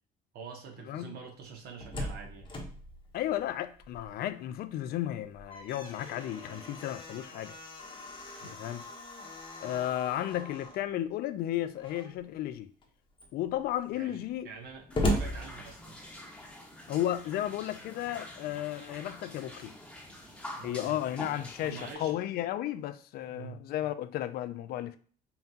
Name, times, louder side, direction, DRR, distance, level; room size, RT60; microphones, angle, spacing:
voice 1, 0.3-2.5 8.3-8.7 13.9-16.0 20.6-21.0 21.6-22.1 23.2-23.6, right 5 dB, 70° right, 0.9 m, -46 dB
Slam, 1.5-4.3 4.7-4.8 5.2-10.8 11.7-12.3 12.8-12.9 13.1-16.3, equal, 30° left, 1.0 m, -38 dB
voice 2, 3.1-7.6 8.4-8.8 9.6-12.7 13.3-14.5 16.9-19.8 20.6-25.0, left 12 dB, 65° left, 0.4 m, -34 dB
sound 1, 14.9-21.9, left 1 dB, 5° left, 0.9 m, -46 dB
5.5 x 2.3 x 2.7 m
cardioid pair, 110°, 17 cm